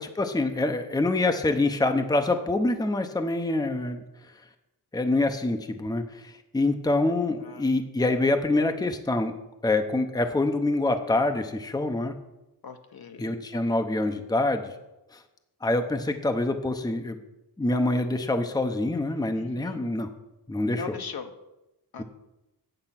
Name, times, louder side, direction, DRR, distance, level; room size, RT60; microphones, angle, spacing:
voice 1, 0.0-4.0 4.9-9.3 9.6-12.1 13.2-14.7 15.1-15.2 15.6-17.2 17.6-20.1 20.5-20.9 22.0-22.1, left 2 dB, 10° left, 7 dB, 0.7 m, -25 dB
voice 2, 12.6-13.4 19.4-19.9 20.8-21.3 21.9-22.0, left 6 dB, 65° left, 6 dB, 1.1 m, -40 dB
9.0 x 7.3 x 5.7 m, 0.94 s
wide cardioid pair, 100°, 40 cm